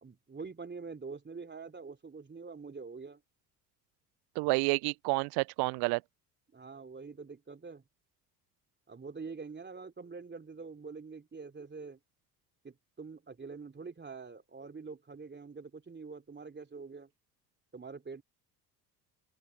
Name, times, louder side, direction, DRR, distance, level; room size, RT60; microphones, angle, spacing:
voice 1, 0.0-3.2 6.5-7.8 8.9-12.0 12.6-17.1 17.7-18.2, right 4 dB, 20° right, 3.5 m, -45 dB
voice 2, 4.4-6.0, right 28 dB, 55° right, 0.6 m, -29 dB
open air
hypercardioid pair, 60°, 47 cm